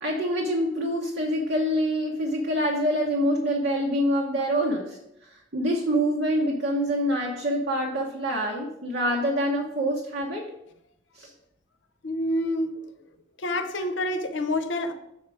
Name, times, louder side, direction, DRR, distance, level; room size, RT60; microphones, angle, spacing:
voice 1, 0.0-5.0 5.3-10.5 11.1-11.3, equal, 60° right, -1 dB, 0.9 m, -26 dB
voice 2, 12.0-12.8 13.4-14.9, left 1 dB, 70° left, 8 dB, 0.7 m, -27 dB
6.4 x 4.3 x 4.8 m, 0.82 s
head